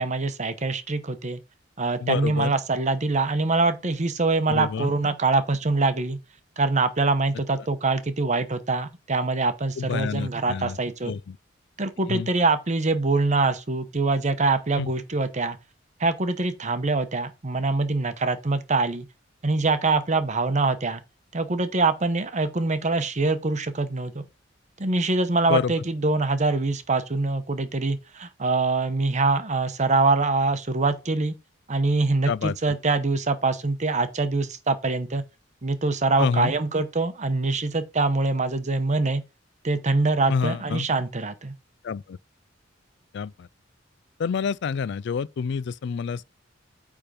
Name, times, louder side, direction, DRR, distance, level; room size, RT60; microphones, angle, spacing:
voice 1, 0.0-1.4 1.8-6.2 6.6-11.1 11.8-15.6 16.0-19.1 19.4-21.0 21.3-24.2 24.8-31.3 31.7-35.2 35.6-39.2 39.6-41.5, right 3 dB, 40° right, 0.9 m, -24 dB
voice 2, 2.0-2.5 4.5-4.9 9.8-10.8 11.0-11.4 12.1-12.3 14.8-14.9 25.5-25.7 32.3-32.7 36.2-36.5 40.3-40.9 41.8-42.2 43.1-43.5 44.2-46.3, left 6 dB, 65° left, 0.4 m, -28 dB
8.8 x 3.6 x 5.1 m
head